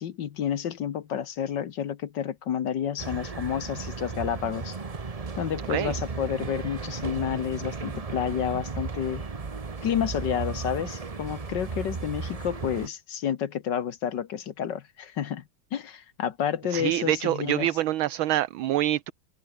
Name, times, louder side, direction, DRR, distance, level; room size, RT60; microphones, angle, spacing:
voice 1, 0.0-4.8 5.4-9.2 9.8-15.4 15.7-17.7, left 9 dB, 60° left, 1.6 m, -30 dB
sound 1, 3.0-12.9, right 4 dB, 40° right, 0.5 m, -35 dB
voice 2, 16.7-19.1, right 13 dB, 70° right, 1.6 m, -26 dB
open air
omnidirectional pair, 2.4 m